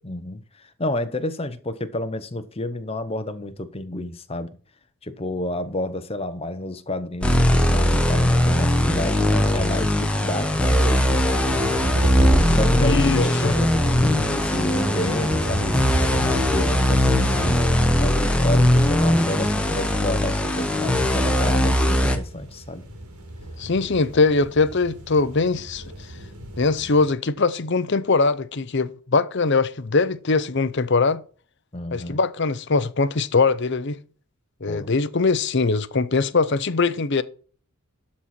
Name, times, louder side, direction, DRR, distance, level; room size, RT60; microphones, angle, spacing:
voice 1, 0.0-4.5 5.0-17.7 18.0-22.8 31.7-32.2 34.7-34.9, left 1 dB, 25° left, 0.9 m, -30 dB
sound 1, 7.2-22.2, left 1 dB, 5° left, 1.0 m, -20 dB
sound 2, 9.7-27.1, right 1 dB, 90° right, 2.2 m, -34 dB
voice 2, 12.8-13.5 23.6-25.8 26.6-31.2 31.9-34.0 34.6-37.2, left 3 dB, 50° left, 0.7 m, -21 dB
12.5 x 4.3 x 6.0 m
head